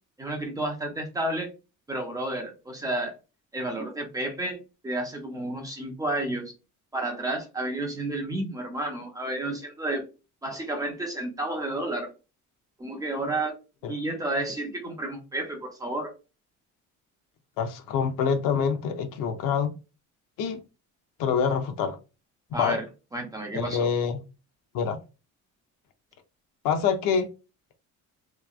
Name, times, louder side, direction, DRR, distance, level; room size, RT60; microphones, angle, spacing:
voice 1, 0.2-1.5 1.9-3.1 3.5-4.6 4.8-6.5 6.9-10.1 10.4-12.1 12.8-13.5 13.9-16.1 22.5-22.8 23.1-23.9, right 1 dB, 10° right, 0.5 m, -31 dB
voice 2, 17.6-19.7 20.4-20.6 21.2-22.0 22.5-22.8 23.5-24.2 24.7-25.0 26.6-27.3, left 6 dB, 85° left, 0.7 m, -26 dB
3.0 x 2.2 x 2.3 m
cardioid pair, 170°, 32 cm